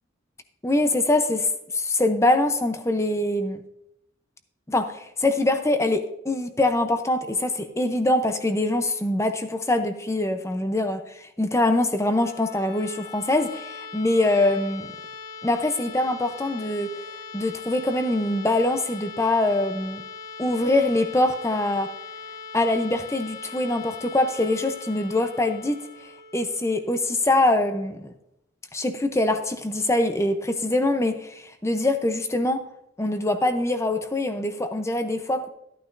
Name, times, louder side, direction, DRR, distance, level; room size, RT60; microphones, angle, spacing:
voice 1, 0.6-1.5 1.7-3.6 4.7-14.9 15.4-16.9 17.3-20.0 20.4-21.9 22.5-25.8 26.3-28.1 28.7-32.6 33.0-35.5, left 2 dB, 15° left, 8 dB, 0.7 m, -23 dB
sound 1, 11.8-27.6, left 5 dB, 90° left, 1.1 m, -41 dB
13.5 x 9.3 x 2.6 m, 0.80 s
head